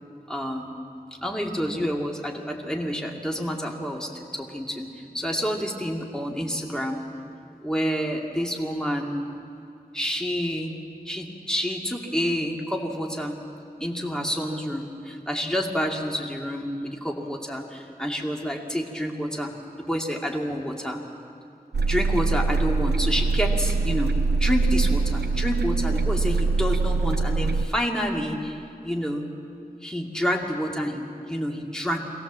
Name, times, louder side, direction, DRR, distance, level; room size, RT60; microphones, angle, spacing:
voice 1, 0.3-0.7 1.2-4.9 5.1-7.0 7.6-9.3 9.9-10.7 11.0-13.4 13.8-19.5 19.8-21.0 21.9-24.1 24.4-29.3 29.8-32.0, equal, 5° left, 0 dB, 2.5 m, -28 dB
sound 1, 21.7-27.7, right 3 dB, 85° right, 0.5 m, -23 dB
24.0 x 17.0 x 7.5 m, 2.5 s
wide cardioid pair, 40°, 16 cm